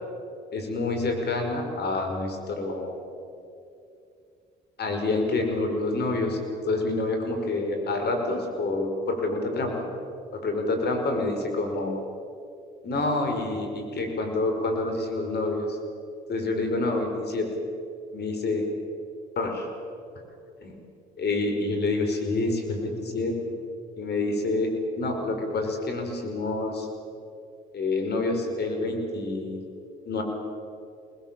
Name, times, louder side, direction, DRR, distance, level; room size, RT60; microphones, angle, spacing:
voice 1, 0.5-3.0 4.8-6.4 6.6-9.8 10.3-12.0 12.8-15.8 16.3-17.5 18.1-18.6 19.4-19.7 20.6-20.8 21.2-23.3 24.0-24.7 25.0-26.9 27.7-29.6 30.1-30.2, left 2 dB, 55° left, 4 dB, 5.1 m, -27 dB
25.5 x 20.0 x 7.5 m, 2.6 s
supercardioid pair, 65°, 20 cm